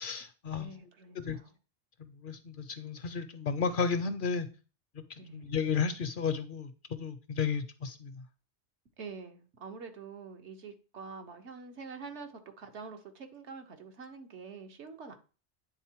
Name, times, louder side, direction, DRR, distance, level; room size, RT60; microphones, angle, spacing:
voice 1, 0.0-0.7 1.2-1.4 2.0-4.5 5.3-8.2, left 5 dB, 60° left, 11 dB, 0.6 m, -33 dB
voice 2, 0.5-1.5 5.2-5.6 9.0-15.2, right 5 dB, 80° right, 5 dB, 1.2 m, -46 dB
8.9 x 3.6 x 4.5 m, 0.35 s
omnidirectional pair, 1.2 m